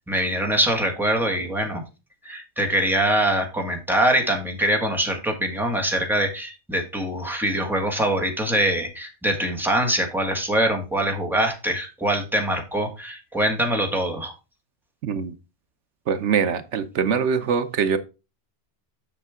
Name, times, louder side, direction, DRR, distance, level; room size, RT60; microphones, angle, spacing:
voice 1, 0.0-1.8 2.2-14.3, right 1 dB, ahead, 1.6 m, -23 dB
voice 2, 15.0-15.3 16.1-18.0, right 6 dB, 80° right, 1.1 m, -23 dB
7.3 x 6.6 x 3.6 m
omnidirectional pair, 1.2 m